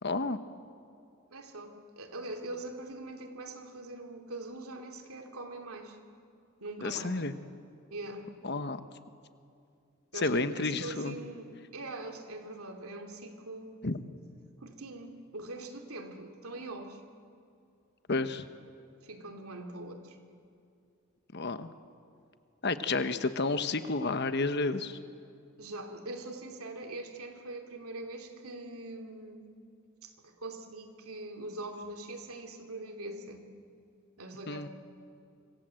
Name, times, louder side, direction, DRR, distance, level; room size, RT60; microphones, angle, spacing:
voice 1, 0.0-0.4 6.8-7.3 8.4-8.8 10.1-11.2 13.8-14.0 18.1-18.4 21.3-21.7 22.6-25.0 34.5-34.7, left 3 dB, 50° left, 10 dB, 1.1 m, -31 dB
voice 2, 1.3-6.0 6.6-7.2 7.9-8.3 10.1-13.8 14.6-17.0 19.0-20.2 25.6-29.4 30.0-33.5 34.2-34.7, right 2 dB, 90° right, 5 dB, 2.8 m, -42 dB
26.0 x 25.5 x 7.7 m, 2.5 s
head